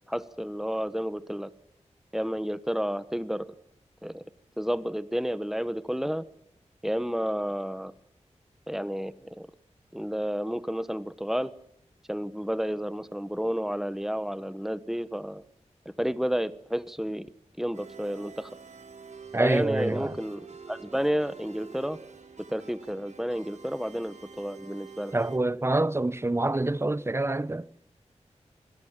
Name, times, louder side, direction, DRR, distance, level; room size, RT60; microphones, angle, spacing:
voice 1, 0.1-1.5 2.1-3.5 4.0-4.2 4.6-6.2 6.8-7.9 8.7-9.5 9.9-11.5 12.1-15.4 16.0-17.3 17.6-18.5 19.4-20.4 20.7-22.0 22.5-25.2, equal, 5° right, 1.1 m, -31 dB
sound 1, 17.7-25.4, right 5 dB, 75° right, 3.0 m, -47 dB
voice 2, 19.3-20.1 25.1-27.7, right 2 dB, 20° right, 0.8 m, -26 dB
25.5 x 17.0 x 7.4 m
wide cardioid pair, 75°, 12 cm